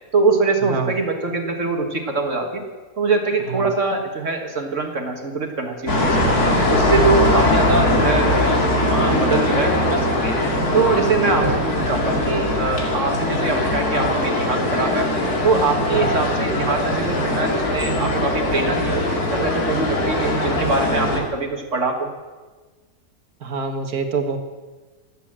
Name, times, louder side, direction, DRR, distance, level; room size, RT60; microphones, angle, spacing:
voice 1, 0.1-2.6 3.0-6.3 6.6-10.4 10.7-15.1 15.4-19.0 19.3-22.1, right 3 dB, 55° right, 3 dB, 2.0 m, -23 dB
sound 1, 5.9-21.2, left 1 dB, 85° left, 3.0 m, -20 dB
voice 2, 23.4-24.4, right 5 dB, 80° right, 6 dB, 1.9 m, -26 dB
19.5 x 8.1 x 8.7 m, 1.3 s
omnidirectional pair, 1.6 m